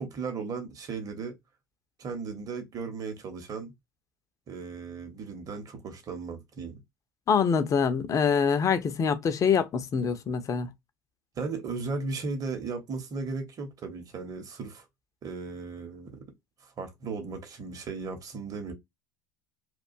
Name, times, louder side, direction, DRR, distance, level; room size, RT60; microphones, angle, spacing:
voice 1, 0.0-1.4 2.0-3.7 4.5-6.8 11.4-14.8 15.2-16.3 16.6-18.7, right 4 dB, 35° right, 0.8 m, -36 dB
voice 2, 7.3-10.7, left 6 dB, 30° left, 0.5 m, -25 dB
2.4 x 2.2 x 2.5 m
figure-of-eight pair, 65°, 10 cm